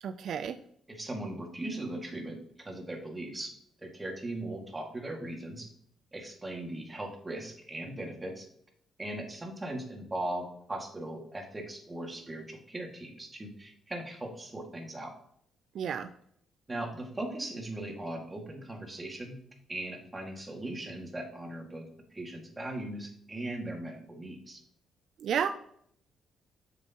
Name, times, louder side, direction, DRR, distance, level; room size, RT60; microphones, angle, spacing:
voice 1, 0.0-0.6 15.7-16.1 25.2-25.5, right 8 dB, 65° right, 10 dB, 0.4 m, -31 dB
voice 2, 0.9-2.4 2.6-3.5 3.8-5.7 6.1-8.5 9.0-15.1 16.7-19.4 19.7-24.6, right 1 dB, 20° right, 2 dB, 2.0 m, -39 dB
7.5 x 6.7 x 2.9 m, 0.67 s
cardioid pair, 90°, 0 cm